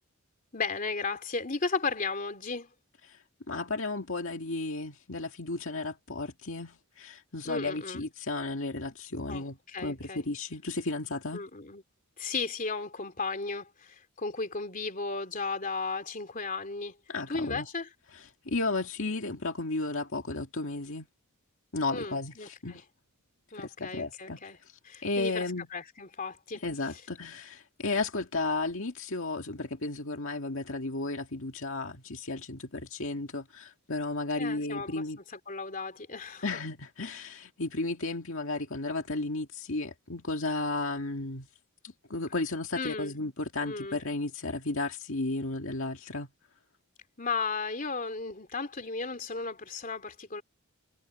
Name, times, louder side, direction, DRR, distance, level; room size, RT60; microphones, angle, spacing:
voice 1, 0.5-2.7 7.4-8.0 9.3-10.2 11.3-11.8 12.2-16.9 17.3-17.9 21.9-22.8 23.5-24.6 24.8-26.6 34.4-36.4 42.7-43.1 43.6-44.0 47.2-50.4, left 4 dB, 40° left, 3.3 m, -35 dB
voice 2, 3.5-9.6 9.8-11.4 17.1-17.7 18.4-21.1 21.7-22.8 23.6-25.7 26.6-35.2 36.4-41.5 41.8-46.3, left 2 dB, 60° left, 2.2 m, -34 dB
head